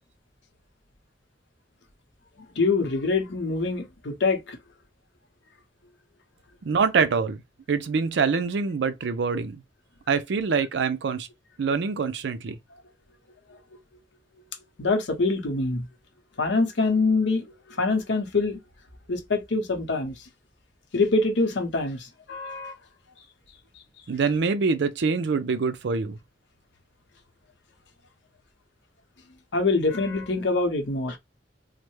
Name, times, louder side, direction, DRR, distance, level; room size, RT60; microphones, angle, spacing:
voice 1, 2.4-4.6 14.8-15.9 16.4-18.6 19.1-20.3 20.9-22.7 29.5-31.2, left 3 dB, 75° left, 0.8 m, -25 dB
voice 2, 6.6-7.4 7.7-9.6 10.1-11.3 11.6-12.6 24.1-26.2, right 5 dB, 70° right, 0.4 m, -25 dB
3.2 x 2.1 x 3.1 m
head